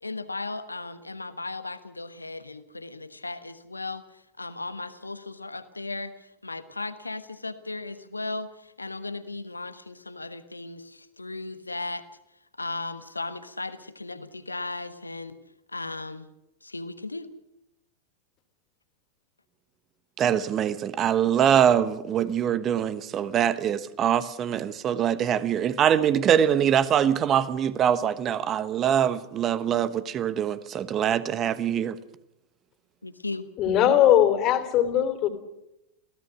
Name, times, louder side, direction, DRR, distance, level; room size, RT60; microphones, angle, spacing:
voice 1, 0.0-12.0 12.6-15.4 15.7-16.3 16.6-17.3 33.0-33.5, left 3 dB, 80° left, 1.3 m, -36 dB
voice 2, 20.2-32.0, right 9 dB, 30° right, 1.2 m, -23 dB
voice 3, 33.6-35.3, left 11 dB, 35° left, 3.0 m, -20 dB
26.5 x 17.0 x 6.3 m
figure-of-eight pair, 90°, 0 cm